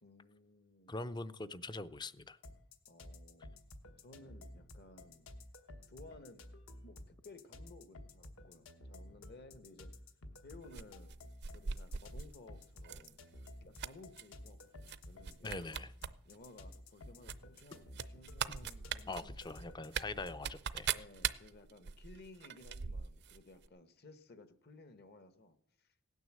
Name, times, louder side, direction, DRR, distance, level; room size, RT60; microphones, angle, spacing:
voice 1, 0.0-1.0 2.9-3.5 4.0-5.3 5.9-6.4 6.8-9.9 10.4-11.2 11.5-13.3 13.6-15.7 16.2-19.8 20.9-25.9, left 2 dB, 50° left, 1.1 m, -57 dB
voice 2, 0.9-2.4 15.4-15.9 18.5-18.6 19.1-20.9, left 3 dB, 20° left, 0.5 m, -43 dB
sound 1, 2.4-20.5, left 1 dB, 65° left, 1.2 m, -53 dB
sound 2, 10.7-12.3 12.8-13.1 13.4-14.2 14.8-15.0 15.2-16.1 16.4-16.5 17.2-23.4 23.6-23.7, right 8 dB, 50° right, 0.5 m, -40 dB
17.0 x 9.5 x 7.4 m
head